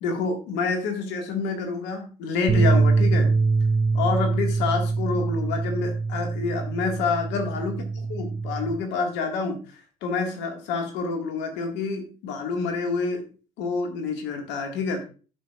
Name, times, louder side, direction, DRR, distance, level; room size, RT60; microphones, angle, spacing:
voice 1, 0.0-3.3 3.9-7.8 8.1-13.3 13.6-15.0, left 4 dB, 65° left, 4 dB, 1.9 m, -28 dB
sound 1, 2.5-8.7, right 4 dB, 30° right, 2.6 m, -23 dB
13.0 x 5.8 x 2.4 m, 0.36 s
hypercardioid pair, 55°, 20 cm